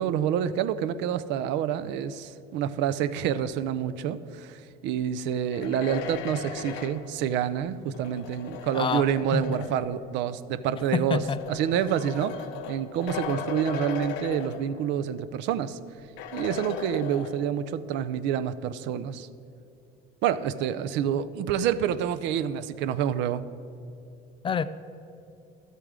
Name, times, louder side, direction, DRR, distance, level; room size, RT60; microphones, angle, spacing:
voice 1, 0.0-11.2 11.5-15.8 16.3-19.3 20.2-23.4, right 9 dB, 70° right, 13 dB, 0.5 m, -28 dB
sound 1, 5.3-10.0 10.9-15.1 15.4-15.5 16.2-17.7, left 7 dB, 80° left, 0.8 m, -38 dB
voice 2, 10.9-11.4 24.4-24.6, left 6 dB, 25° left, 13 dB, 0.4 m, -26 dB
12.0 x 8.2 x 3.7 m, 2.6 s
supercardioid pair, 105°, 19 cm